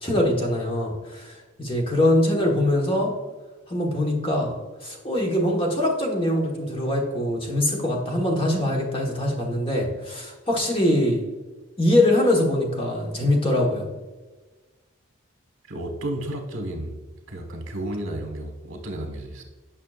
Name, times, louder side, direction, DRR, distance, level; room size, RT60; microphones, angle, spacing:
voice 1, 0.0-3.1 3.7-4.5 4.8-11.2 11.8-13.9, left 1 dB, 25° left, -1 dB, 1.2 m, -23 dB
voice 2, 15.7-16.9 17.3-19.4, right 1 dB, 75° right, 3 dB, 1.3 m, -32 dB
8.6 x 5.7 x 2.4 m, 1.2 s
head